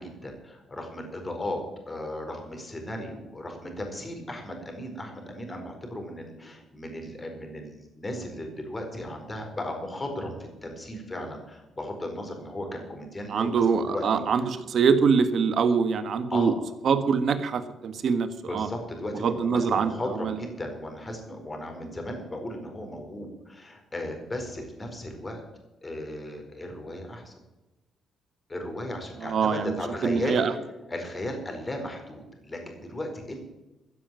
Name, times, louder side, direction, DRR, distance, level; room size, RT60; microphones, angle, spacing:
voice 1, 0.0-14.2 16.3-16.5 18.5-25.4 25.8-27.3 28.5-30.4 30.9-33.5, left 1 dB, 25° left, 3 dB, 4.5 m, -36 dB
voice 2, 13.3-16.5 16.8-18.7 19.2-19.9 20.2-20.4 29.2-29.7 30.0-30.5, right 6 dB, 60° right, 9 dB, 1.5 m, -24 dB
15.0 x 7.5 x 9.1 m, 1.0 s
cardioid pair, 90°, 0 cm